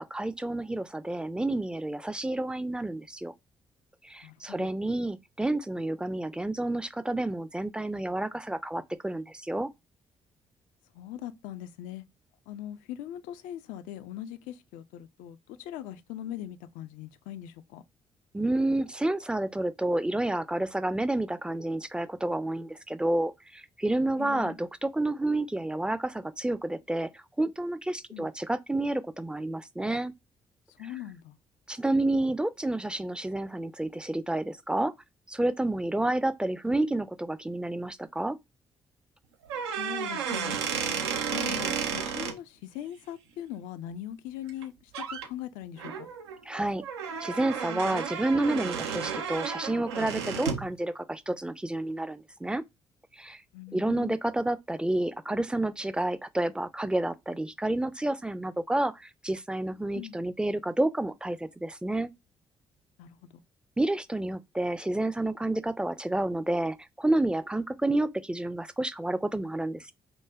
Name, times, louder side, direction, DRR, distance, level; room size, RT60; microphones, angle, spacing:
voice 1, 0.0-3.3 4.0-9.7 18.3-30.1 31.7-34.9 35.3-38.4 46.5-46.8 47.2-52.6 53.1-53.4 53.7-62.1 63.8-69.9, right 1 dB, 5° right, 0.4 m, -30 dB
voice 2, 4.2-4.7 10.9-12.0 12.5-17.8 24.2-24.6 28.1-28.3 30.8-31.4 39.8-40.6 40.9-41.0 41.3-46.1 53.5-54.2 59.9-60.2 63.0-63.3, left 11 dB, 70° left, 0.4 m, -41 dB
sound 1, 39.4-42.3 44.5-44.6 44.9-45.3 45.8-50.7, right 6 dB, 85° right, 0.5 m, -33 dB
4.9 x 2.1 x 2.3 m
hypercardioid pair, 45°, 14 cm